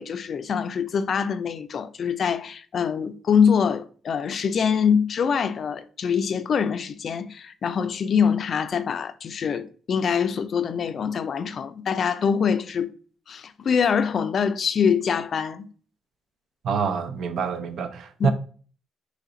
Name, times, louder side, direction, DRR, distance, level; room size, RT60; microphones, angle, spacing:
voice 1, 0.0-12.9 13.3-15.7 18.2-18.3, left 6 dB, 55° left, 0.3 m, -24 dB
voice 2, 16.6-18.3, right 6 dB, 65° right, 0.4 m, -26 dB
3.2 x 2.4 x 3.8 m
cardioid pair, 90°, 0 cm